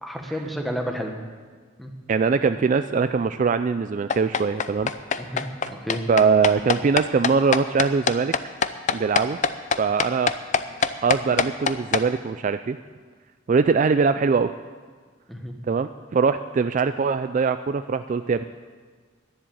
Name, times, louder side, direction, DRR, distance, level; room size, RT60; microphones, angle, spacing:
voice 1, 0.0-1.2 1.8-1.9 5.2-6.0 15.3-15.5, equal, ahead, 3 dB, 1.3 m, -31 dB
voice 2, 2.1-4.9 6.1-8.3 8.9-9.4 9.8-10.4 11.0-12.8 13.5-14.5 15.7-18.4, right 5 dB, 40° right, 11 dB, 0.3 m, -22 dB
sound 1, 4.1-12.0, left 5 dB, 35° left, 0.5 m, -23 dB
11.0 x 10.5 x 9.1 m, 1.5 s
head